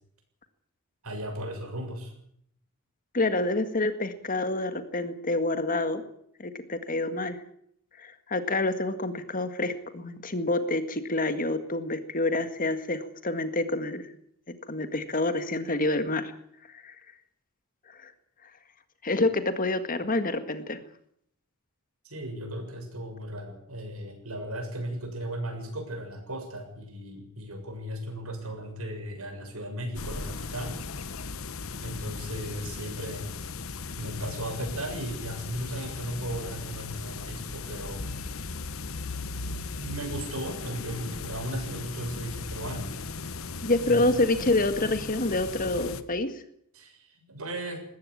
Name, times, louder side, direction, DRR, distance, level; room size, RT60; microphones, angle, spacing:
voice 1, 1.0-2.1 22.0-30.8 31.8-33.3 34.0-38.1 39.8-42.9 43.9-44.1 46.7-47.8, right 1 dB, 75° right, 4 dB, 7.0 m, -36 dB
voice 2, 3.1-6.0 6.4-7.4 8.0-14.1 14.7-16.3 16.7-17.0 17.9-18.1 19.0-20.8 43.6-46.4, left 2 dB, 40° left, 10 dB, 1.8 m, -27 dB
sound 1, 29.9-46.0, left 4 dB, 65° left, 1.2 m, -37 dB
20.0 x 16.5 x 8.7 m, 0.70 s
head